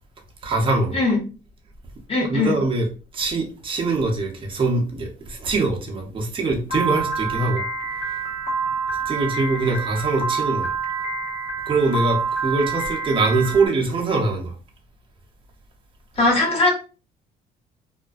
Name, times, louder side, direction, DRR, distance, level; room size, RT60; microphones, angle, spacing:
voice 1, 0.4-1.0 2.3-2.9 3.1-7.7 8.0-8.2 9.1-10.7 11.7-14.6, right 3 dB, 30° right, 0.7 m, -23 dB
voice 2, 2.1-2.5 16.2-16.7, left 2 dB, 35° left, 1.0 m, -19 dB
Piano, 6.7-13.7, right 4 dB, 75° left, 1.0 m, -27 dB
2.4 x 2.1 x 2.3 m
cardioid pair, 110°, 17 cm